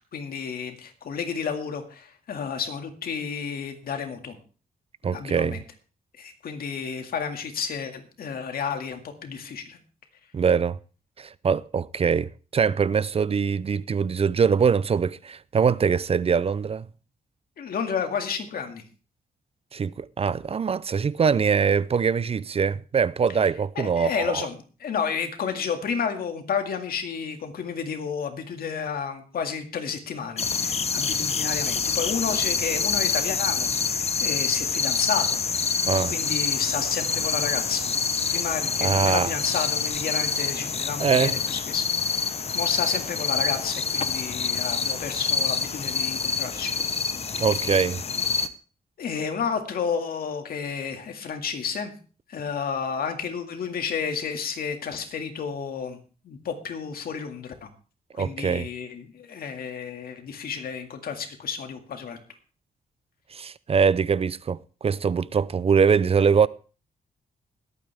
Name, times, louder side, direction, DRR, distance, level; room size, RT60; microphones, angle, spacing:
voice 1, 0.1-4.4 5.1-5.6 6.2-9.8 17.6-18.8 23.8-33.7 34.2-38.0 38.3-41.9 42.1-46.7 49.0-51.9 52.3-56.0 56.2-57.7 58.1-62.2, left 6 dB, 75° left, 2.1 m, -31 dB
voice 2, 5.0-5.6 10.3-10.8 11.2-16.9 19.7-24.4 35.9-36.1 38.8-39.3 41.0-41.4 47.4-48.0 58.2-58.7 63.3-66.5, right 6 dB, 40° right, 0.5 m, -23 dB
sound 1, 30.4-48.5, left 5 dB, 45° left, 0.9 m, -26 dB
21.0 x 8.9 x 3.5 m
cardioid pair, 100°, 15 cm